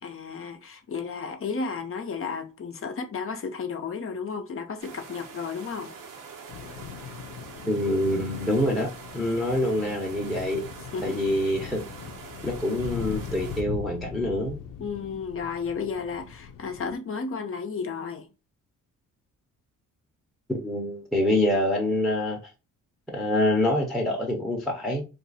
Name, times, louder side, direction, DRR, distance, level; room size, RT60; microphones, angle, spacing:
voice 1, 0.0-5.9 10.9-11.3 14.8-18.3, left 5 dB, 40° left, 0.7 m, -33 dB
sound 1, 4.8-13.6, right 5 dB, 75° right, 1.1 m, -44 dB
sound 2, 6.5-17.0, left 7 dB, 80° left, 0.6 m, -40 dB
voice 2, 7.7-10.6 11.0-11.8 12.4-14.6 20.5-22.4 23.1-25.0, left 1 dB, ahead, 0.8 m, -26 dB
2.7 x 2.5 x 4.0 m
cardioid pair, 100°, 33 cm